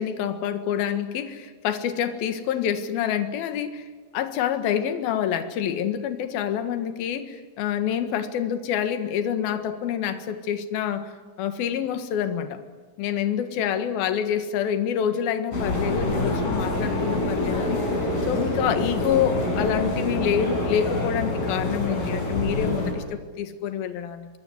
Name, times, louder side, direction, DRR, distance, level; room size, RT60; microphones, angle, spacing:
voice 1, 0.0-3.9 4.1-11.1 11.4-12.6 13.0-17.8 18.3-24.3, left 9 dB, 60° left, 9 dB, 3.0 m, -27 dB
sound 1, 15.5-22.9, left 2 dB, 45° left, 7.4 m, -26 dB
26.5 x 22.5 x 9.9 m, 1.4 s
omnidirectional pair, 5.6 m